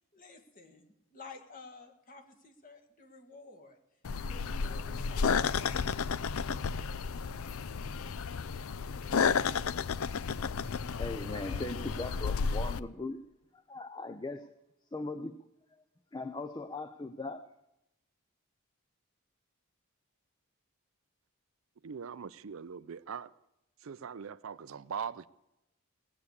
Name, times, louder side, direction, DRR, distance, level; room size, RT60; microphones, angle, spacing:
voice 1, 0.1-3.8 4.3-5.9, left 3 dB, 40° left, 1.8 m, -52 dB
sound 1, 4.0-12.8, left 5 dB, 75° left, 0.5 m, -32 dB
voice 2, 11.0-13.2 13.5-14.6 14.9-15.4 15.7-15.8 16.1-17.5, left 2 dB, 20° left, 0.5 m, -39 dB
voice 3, 21.8-23.3 23.8-25.3, right 6 dB, 65° right, 0.5 m, -41 dB
19.0 x 8.5 x 8.1 m
head